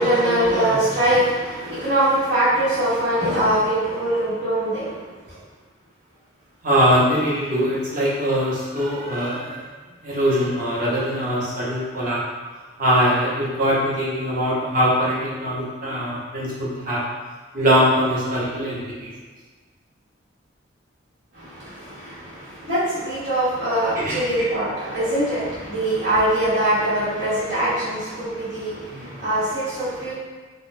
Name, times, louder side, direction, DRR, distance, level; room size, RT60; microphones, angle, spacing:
voice 1, 0.0-4.9 21.4-30.1, right 1 dB, 85° right, -13 dB, 1.1 m, -22 dB
voice 2, 6.6-9.7 10.0-12.2 12.8-17.0 17.5-19.1 23.9-24.2, equal, 45° right, -7 dB, 0.8 m, -22 dB
3.8 x 2.0 x 2.6 m, 1.4 s
head